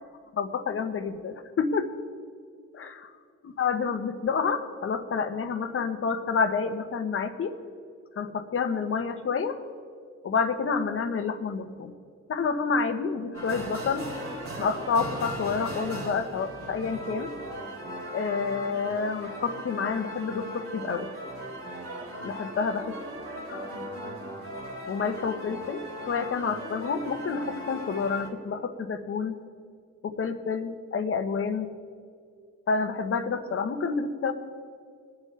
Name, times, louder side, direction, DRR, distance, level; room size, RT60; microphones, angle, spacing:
voice 1, 0.3-1.9 2.7-3.1 3.4-7.6 8.2-9.6 10.2-11.9 12.3-14.1 14.6-17.3 18.1-21.1 22.2-23.0 23.5-23.7 24.9-29.4 30.0-31.7 32.7-34.3, left 5 dB, 45° left, 8 dB, 1.1 m, -29 dB
sound 1, 13.3-28.3, right 1 dB, 50° right, 3.4 m, -38 dB
22.5 x 7.7 x 3.3 m, 2.1 s
cardioid pair, 90°, 30 cm